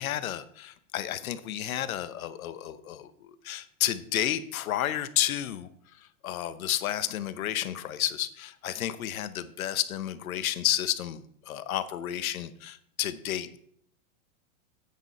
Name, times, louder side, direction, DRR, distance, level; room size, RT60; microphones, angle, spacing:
voice 1, 0.0-13.6, left 12 dB, 85° left, 13 dB, 1.0 m, -31 dB
9.6 x 8.5 x 4.2 m, 0.66 s
hypercardioid pair, 110°, 41 cm